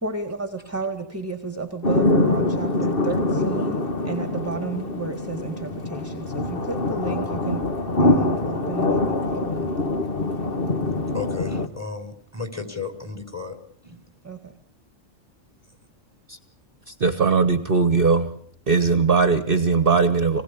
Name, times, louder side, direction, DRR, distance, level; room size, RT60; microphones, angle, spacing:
voice 1, 0.0-7.7 8.0-9.9 14.2-14.5, right 4 dB, 10° right, 7 dB, 2.0 m, -32 dB
sound 1, 1.8-11.7, left 2 dB, 45° left, 1.9 m, -24 dB
voice 2, 11.1-13.6 13.8-14.0, left 5 dB, 10° left, 7 dB, 4.4 m, -34 dB
voice 3, 16.9-18.3 18.7-20.4, right 4 dB, 45° right, 10 dB, 1.4 m, -19 dB
26.5 x 20.5 x 8.4 m, 0.64 s
omnidirectional pair, 1.3 m